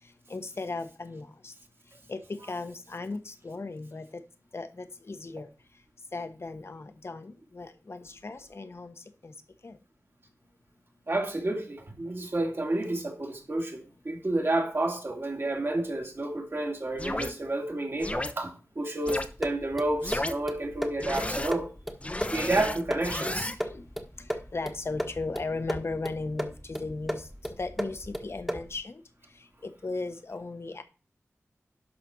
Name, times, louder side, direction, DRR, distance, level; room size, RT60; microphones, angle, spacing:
voice 1, 0.3-1.5 2.1-4.2 4.5-5.5 6.1-8.9 9.2-9.3 9.6-9.8 23.6-23.8 24.5-27.3 27.6-29.0 29.6-30.8, left 3 dB, 55° left, 1.2 m, -36 dB
voice 2, 11.1-21.7 22.3-23.5, right 2 dB, 50° right, 2.3 m, -30 dB
sound 1, 17.0-17.3 18.0-18.3 19.1-19.3 20.0-20.3 21.0-21.5 22.0-23.5, left 1 dB, 25° left, 0.9 m, -32 dB
sound 2, 19.1-28.8, equal, ahead, 1.4 m, -36 dB
11.5 x 4.2 x 6.2 m
wide cardioid pair, 75°, 5 cm